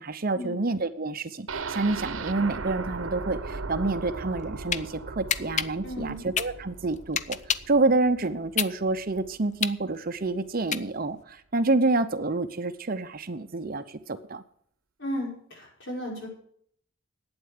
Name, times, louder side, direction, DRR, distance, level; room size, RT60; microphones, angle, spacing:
voice 1, 0.0-7.4 7.7-14.4, right 3 dB, 45° right, 10 dB, 0.8 m, -28 dB
sound 1, 1.5-9.3 9.7-9.8 10.2-10.3, right 4 dB, 70° right, 1.0 m, -38 dB
sound 2, 4.3-4.8 5.3-7.8 8.2-11.2, left 8 dB, 35° left, 0.5 m, -29 dB
voice 2, 5.8-6.2 15.0-16.3, equal, 60° left, -1 dB, 6.1 m, -34 dB
11.5 x 8.9 x 6.6 m, 0.63 s
head